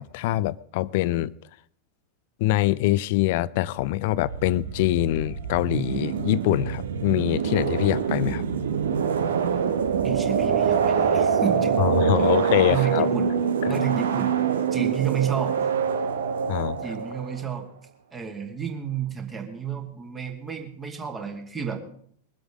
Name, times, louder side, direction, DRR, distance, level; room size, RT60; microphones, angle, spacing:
voice 1, 0.0-1.3 2.4-8.4 11.8-13.1 13.6-13.7 16.5-16.8, left 16 dB, 50° left, 0.5 m, -24 dB
sound 1, 4.1-17.5, right 7 dB, 65° right, 1.0 m, -25 dB
voice 2, 10.0-11.8 12.2-12.4 12.7-13.3 13.7-14.3 14.7-15.6 16.8-17.7 18.1-21.8, right 8 dB, 20° right, 2.5 m, -30 dB
22.0 x 7.9 x 5.1 m
figure-of-eight pair, 90°, 0 cm